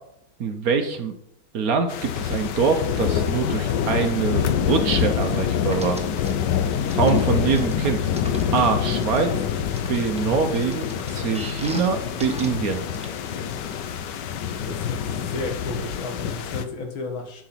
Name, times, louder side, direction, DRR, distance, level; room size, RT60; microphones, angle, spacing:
voice 1, 0.4-1.1 1.5-6.0 6.9-9.3 9.9-12.8, right 5 dB, 55° right, 6 dB, 1.1 m, -24 dB
sound 1, 1.9-16.7, left 8 dB, 70° left, 1.3 m, -26 dB
sound 2, 5.7-6.3 6.9-9.3 9.8-11.9 12.2-12.5 12.9-13.0, right 1 dB, 5° right, 0.5 m, -37 dB
voice 2, 14.6-17.4, left 3 dB, 90° left, 3 dB, 2.3 m, -33 dB
10.5 x 5.0 x 5.8 m, 0.75 s
omnidirectional pair, 2.1 m